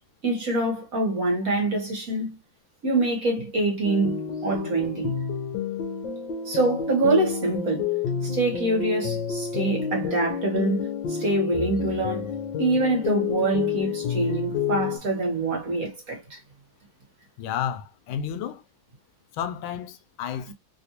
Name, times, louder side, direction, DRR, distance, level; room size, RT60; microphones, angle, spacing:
voice 1, 0.2-2.4 2.8-5.1 6.4-7.9 8.3-12.3 12.6-16.4, right 2 dB, 50° right, 1.5 m, -25 dB
sound 1, 3.8-15.0, left 7 dB, 70° left, 1.5 m, -29 dB
voice 2, 17.4-18.6 19.3-20.5, left 9 dB, 90° left, 1.4 m, -31 dB
3.6 x 2.5 x 2.8 m
omnidirectional pair, 2.2 m